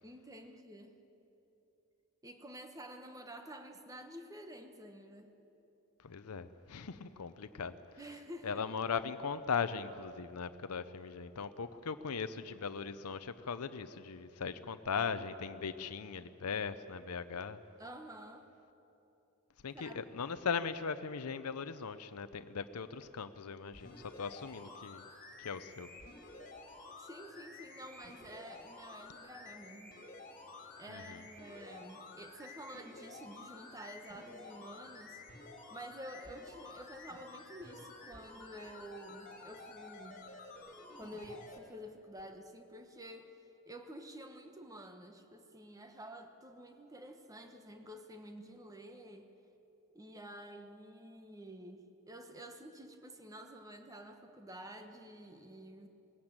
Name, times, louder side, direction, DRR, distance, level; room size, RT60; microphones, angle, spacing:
voice 1, 0.0-1.0 2.2-5.4 8.0-8.6 17.8-18.5 19.7-20.0 27.0-29.9 30.8-35.2 35.7-40.3 40.9-49.3 49.9-55.9, right 1 dB, 15° right, 6 dB, 1.2 m, -50 dB
voice 2, 6.0-7.7 8.4-17.6 19.6-25.0 25.4-25.9 30.9-31.2, left 6 dB, 85° left, 11 dB, 0.7 m, -39 dB
sound 1, 23.7-41.6 42.2-42.3, left 3 dB, 40° left, 2.6 m, -52 dB
sound 2, 24.6-40.6, left 2 dB, ahead, 4.5 m, -65 dB
19.5 x 16.0 x 8.9 m, 2.9 s
head